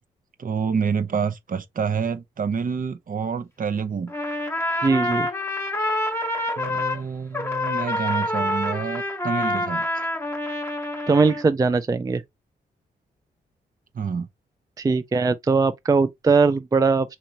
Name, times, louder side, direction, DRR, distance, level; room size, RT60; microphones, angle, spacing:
voice 1, 0.4-4.1 6.6-9.9 13.9-14.3, right 6 dB, 50° right, 0.7 m, -27 dB
Trumpet, 4.1-7.0 7.3-11.5, left 1 dB, 15° left, 1.0 m, -27 dB
voice 2, 4.8-5.3 11.1-12.2 14.8-17.2, right 4 dB, 20° right, 0.3 m, -20 dB
4.0 x 3.0 x 2.7 m
cardioid pair, 55°, 18 cm